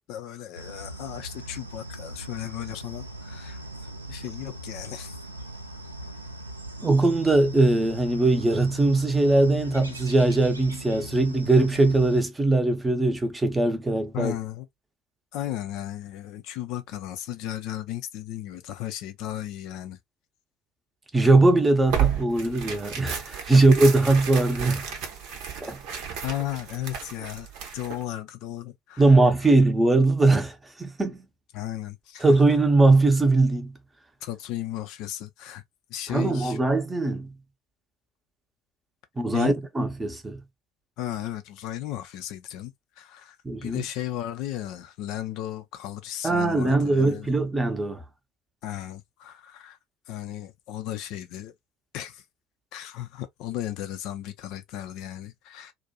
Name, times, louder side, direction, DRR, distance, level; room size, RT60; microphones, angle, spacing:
voice 1, 0.1-3.6 4.1-5.2 14.1-14.7 15.3-20.0 23.5-23.6 26.2-29.2 31.5-32.3 34.2-35.6 35.9-36.6 39.3-39.5 41.0-43.4 43.6-47.3 48.6-49.8 50.1-51.5 51.9-52.2 52.7-55.7, left 13 dB, 55° left, 0.4 m, -35 dB
sound 1, 0.6-12.2, right 1 dB, 85° right, 0.4 m, -40 dB
voice 2, 6.8-14.3 21.1-24.9 25.6-25.8 29.0-31.2 32.2-33.7 36.1-37.3 39.2-40.4 43.4-43.8 46.2-48.0, right 2 dB, 15° right, 0.7 m, -21 dB
Tearing, 21.9-28.0, right 9 dB, 55° right, 0.7 m, -32 dB
2.5 x 2.2 x 2.6 m
figure-of-eight pair, 65°, 0 cm